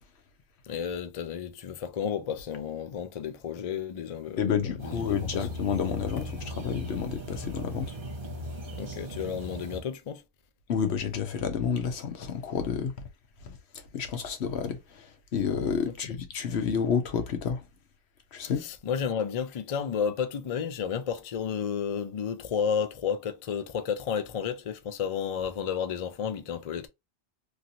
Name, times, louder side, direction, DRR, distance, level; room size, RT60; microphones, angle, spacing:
voice 1, 0.6-5.5 8.7-10.2 15.8-15.9 18.6-26.9, left 7 dB, 50° left, 0.4 m, -32 dB
voice 2, 4.4-8.0 10.7-12.9 13.4-13.6 13.9-17.6 18.3-18.7, left 7 dB, 75° left, 1.0 m, -30 dB
sound 1, 4.8-9.8, equal, 55° right, 1.5 m, -38 dB
3.1 x 2.6 x 2.7 m
omnidirectional pair, 1.1 m